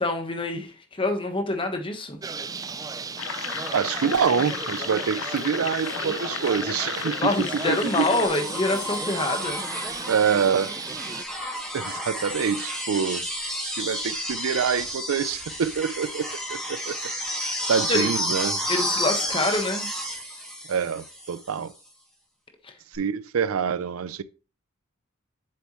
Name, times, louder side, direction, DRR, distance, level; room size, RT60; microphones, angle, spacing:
voice 1, 0.0-2.2 7.2-9.6 17.9-18.1 18.7-19.9 22.6-22.7, left 2 dB, 25° left, 1.2 m, -26 dB
Bird, 2.2-11.2, right 4 dB, 15° right, 0.3 m, -35 dB
sound 1, 3.2-8.3, left 8 dB, 70° left, 0.6 m, -33 dB
voice 2, 3.7-7.3 7.7-8.0 10.1-10.7 11.7-13.3 13.6-17.0 17.7-18.6 20.7-21.7 22.9-24.2, right 6 dB, 80° right, 0.4 m, -26 dB
sound 2, 7.5-21.5 22.9-23.0, equal, 5° left, 2.4 m, -31 dB
7.6 x 6.9 x 3.1 m
head